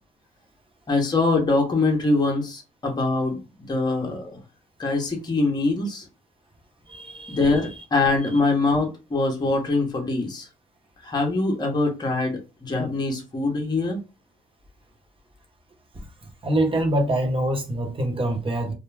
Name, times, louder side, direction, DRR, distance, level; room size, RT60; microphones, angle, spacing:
voice 1, 0.9-3.4 3.7-4.4 4.8-6.0 7.3-10.5 11.0-14.0, left 3 dB, 20° left, 0.8 m, -23 dB
voice 2, 6.9-7.5 16.4-18.7, right 1 dB, 25° right, 0.9 m, -25 dB
2.3 x 2.2 x 3.2 m
cardioid pair, 90°, 20 cm